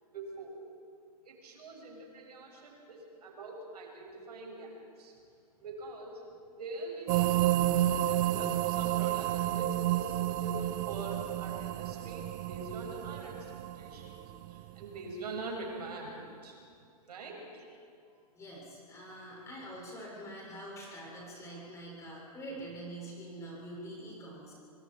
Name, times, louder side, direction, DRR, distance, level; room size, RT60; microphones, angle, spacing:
voice 1, 0.1-0.6 1.2-5.1 5.6-6.2 6.5-16.6 17.1-17.7, right 2 dB, 80° right, 0 dB, 6.9 m, -44 dB
sound 1, 7.1-14.8, right 14 dB, 30° right, 0.5 m, -31 dB
voice 2, 18.3-24.5, right 1 dB, 15° left, -4 dB, 7.5 m, -45 dB
24.5 x 24.5 x 5.1 m, 2.4 s
hypercardioid pair, 150°, 20 cm